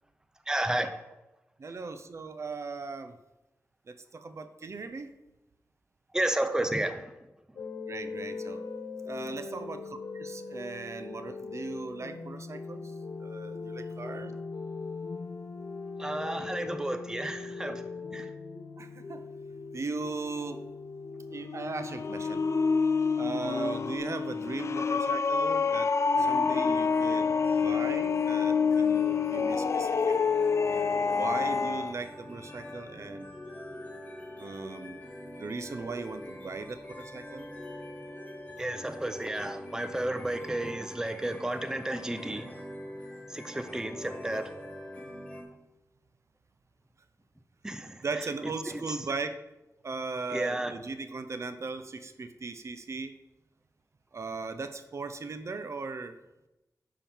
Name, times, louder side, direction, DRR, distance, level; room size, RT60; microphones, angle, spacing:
voice 1, 0.5-0.9 6.1-7.1 16.0-18.3 38.6-42.5 43.3-44.5 47.6-48.0 48.9-49.0 50.3-50.7, right 1 dB, 10° right, 9 dB, 0.7 m, -32 dB
voice 2, 1.6-3.2 3.9-5.1 7.9-8.6 9.1-12.8 13.2-14.3 18.8-19.2 19.7-20.6 21.3-22.4 23.2-25.9 26.2-27.3 27.6-29.9 31.2-33.3 34.4-35.0 35.4-37.5 48.0-49.4 49.8-53.2 54.1-56.2, right 4 dB, 55° right, 9 dB, 0.6 m, -38 dB
sound 1, 7.6-24.0, left 4 dB, 90° left, 1.6 m, -40 dB
sound 2, 21.4-31.9, left 5 dB, 55° left, 0.4 m, -27 dB
sound 3, 26.1-45.4, left 1 dB, 25° left, 1.6 m, -44 dB
10.0 x 3.7 x 7.2 m, 0.97 s
wide cardioid pair, 115°, 6 cm